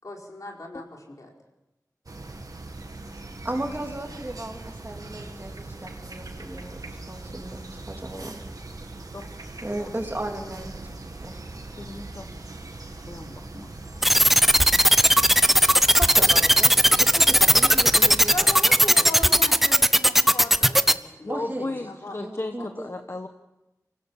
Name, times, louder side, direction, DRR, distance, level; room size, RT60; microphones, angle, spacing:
voice 1, 0.0-1.3 18.3-22.5, left 2 dB, 60° left, 0 dB, 4.6 m, -37 dB
sound 1, 2.1-18.6, right 2 dB, 70° right, 2.1 m, -40 dB
voice 2, 3.4-6.8 7.1-8.4 9.6-10.8 11.2-11.4 16.0-18.5 19.0-19.1 21.3-21.7 22.2-22.9, right 1 dB, 30° right, 2 dB, 3.2 m, -35 dB
voice 3, 11.7-12.5 12.8-13.7 21.2-23.3, left 2 dB, 45° left, 6 dB, 1.1 m, -36 dB
sound 2, 14.0-20.9, equal, 5° right, 0.8 m, -16 dB
25.0 x 16.5 x 7.1 m, 0.98 s
wide cardioid pair, 65°, 6 cm